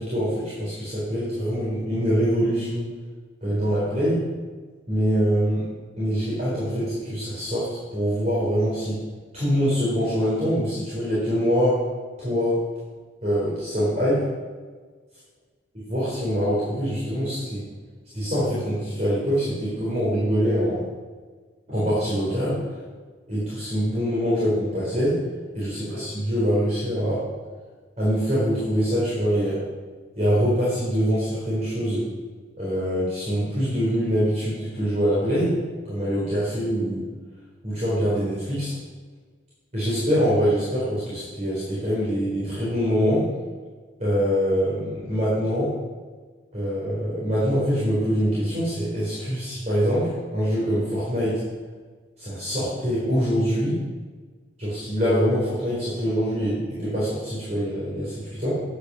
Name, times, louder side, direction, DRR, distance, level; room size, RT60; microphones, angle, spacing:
voice 1, 0.0-2.9 3.4-4.2 4.9-5.7 6.0-9.0 9.3-11.8 12.2-12.6 13.2-14.2 15.8-17.7 18.1-20.8 21.7-22.6 23.3-25.2 25.5-27.3 28.0-29.6 30.2-32.1 32.6-35.6 35.8-37.1 37.6-38.7 39.7-43.3 44.0-45.7 46.5-51.4 52.2-53.8 54.6-58.5, equal, 35° right, -9 dB, 4.0 m, -24 dB
10.0 x 8.9 x 6.1 m, 1.5 s
head